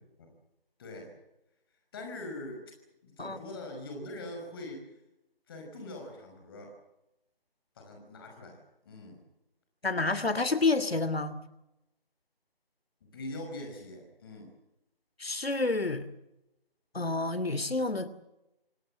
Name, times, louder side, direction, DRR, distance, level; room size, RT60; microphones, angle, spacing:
voice 1, 0.8-1.1 1.9-2.6 3.0-4.8 5.5-6.7 7.8-8.6 8.9-9.2 13.1-14.5, left 1 dB, 25° left, 2 dB, 5.6 m, -42 dB
voice 2, 9.8-11.4 15.2-16.1 16.9-18.1, left 3 dB, 90° left, 14 dB, 2.7 m, -29 dB
27.0 x 18.0 x 7.6 m, 0.90 s
figure-of-eight pair, 165°, 29 cm